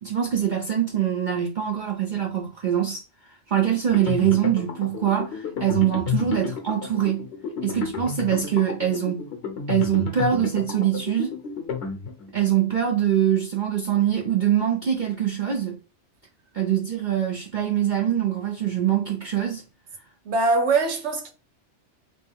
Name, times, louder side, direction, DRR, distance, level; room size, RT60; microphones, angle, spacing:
voice 1, 0.0-7.3 7.6-9.2 9.7-11.3 12.3-15.8 16.5-19.6, right 10 dB, 50° right, 0.6 m, -23 dB
sound 1, 3.9-12.5, left 6 dB, 60° left, 1.0 m, -31 dB
voice 2, 20.3-21.3, right 3 dB, 70° right, 1.1 m, -22 dB
3.2 x 3.0 x 3.5 m
omnidirectional pair, 1.2 m